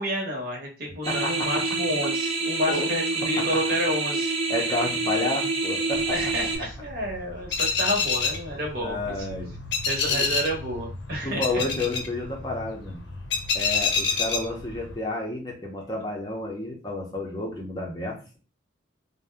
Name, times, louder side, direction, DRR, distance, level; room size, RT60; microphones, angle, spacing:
voice 1, 0.0-4.3 6.1-9.1 9.9-11.6, equal, 50° right, -1 dB, 0.9 m, -30 dB
sound 1, 1.0-6.6, right 3 dB, 30° right, 0.3 m, -27 dB
voice 2, 1.1-1.6 2.7-2.9 3.4-3.5 4.5-6.2 8.8-9.5 10.1-10.3 11.2-13.0 13.5-18.4, left 2 dB, 20° left, -1 dB, 0.5 m, -31 dB
sound 2, 5.9-15.0, left 5 dB, 55° left, 0.6 m, -29 dB
2.6 x 2.1 x 3.3 m, 0.35 s
head